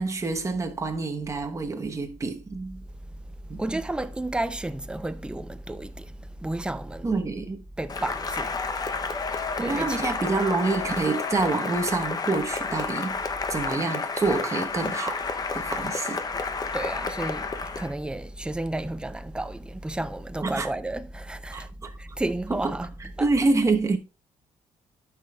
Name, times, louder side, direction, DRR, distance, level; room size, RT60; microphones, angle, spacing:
voice 1, 0.0-2.8 3.5-3.8 7.0-7.6 9.3-13.2 13.5-15.2 15.5-16.2 20.4-20.7 21.5-22.0 22.6-22.7 23.0-24.0, right 3 dB, 25° right, 1.1 m, -27 dB
voice 2, 3.6-7.1 7.8-8.5 9.6-10.1 16.7-17.5 17.8-21.7 22.0-22.9 23.2-23.3, right 2 dB, 5° right, 0.5 m, -32 dB
Cheering / Applause, 7.9-17.9, left 4 dB, 30° left, 0.7 m, -30 dB
12.0 x 6.0 x 2.3 m
cardioid pair, 130°, 13 cm